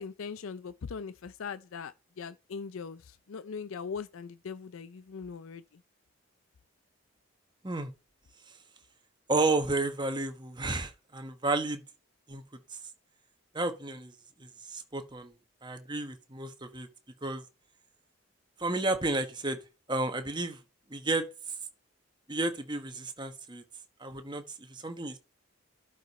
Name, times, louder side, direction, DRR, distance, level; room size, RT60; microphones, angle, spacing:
voice 1, 0.0-5.8, left 5 dB, 75° left, 0.5 m, -40 dB
voice 2, 9.3-11.8 12.3-12.4 12.7-12.8 13.5-14.1 14.4-15.3 15.6-16.9 17.2-17.4 18.6-19.6 19.9-20.6 20.9-21.2 22.3-23.6 24.0-25.2, right 2 dB, 20° right, 1.2 m, -32 dB
12.0 x 5.0 x 4.2 m
head